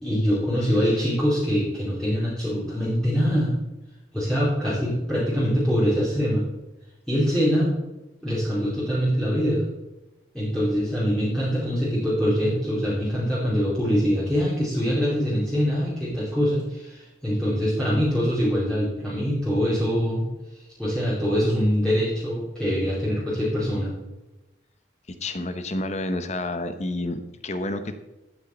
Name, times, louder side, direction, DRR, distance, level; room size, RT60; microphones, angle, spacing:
voice 1, 0.0-3.5 4.1-6.4 7.1-7.8 8.2-9.6 10.3-20.2 20.8-23.9, equal, 5° left, -9 dB, 2.8 m, -24 dB
voice 2, 25.1-28.0, left 2 dB, 35° left, 9 dB, 0.9 m, -30 dB
13.0 x 8.6 x 4.0 m, 1.0 s
head